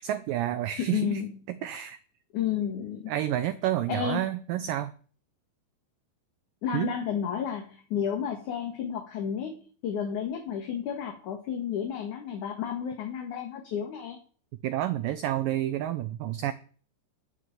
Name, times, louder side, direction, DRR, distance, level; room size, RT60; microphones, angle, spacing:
voice 1, 0.0-1.2 1.5-2.0 3.1-4.9 6.7-6.9 14.6-16.5, right 12 dB, 90° right, 12 dB, 1.9 m, -29 dB
voice 2, 0.8-1.3 2.3-3.1 3.9-4.2 6.6-14.2, left 8 dB, 55° left, 3 dB, 2.7 m, -31 dB
13.5 x 6.6 x 9.4 m, 0.42 s
omnidirectional pair, 4.9 m